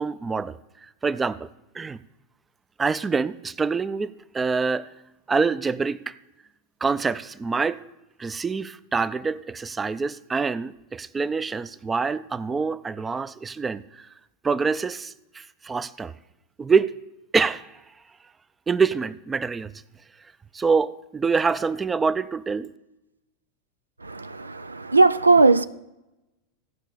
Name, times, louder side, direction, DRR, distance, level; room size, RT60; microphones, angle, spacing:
voice 1, 0.0-1.5 1.7-2.0 2.8-4.9 5.3-6.1 6.8-7.8 8.2-14.1 14.4-16.1 16.6-16.9 17.3-17.8 18.7-19.7 20.5-22.7, right 5 dB, 20° right, 0.4 m, -26 dB
voice 2, 24.0-25.6, right 3 dB, 90° right, 0.3 m, -18 dB
15.0 x 5.4 x 6.8 m
figure-of-eight pair, 90°, 0 cm